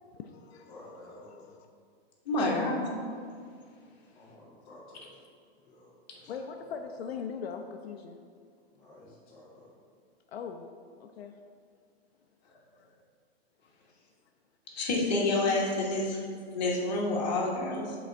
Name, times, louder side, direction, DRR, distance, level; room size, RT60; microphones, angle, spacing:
voice 1, 0.1-1.6 6.3-8.2 10.3-10.7 11.0-11.3, left 6 dB, 70° left, 5 dB, 0.6 m, -41 dB
voice 2, 0.7-1.5 4.1-5.2 5.6-6.3 8.7-9.7 13.9-14.1 16.1-16.3, left 2 dB, 10° left, -9 dB, 0.6 m, -52 dB
voice 3, 2.2-3.0 14.7-16.2 16.5-18.0, left 2 dB, 40° left, -2 dB, 1.3 m, -28 dB
7.4 x 4.0 x 4.4 m, 2.1 s
hypercardioid pair, 175°, 32 cm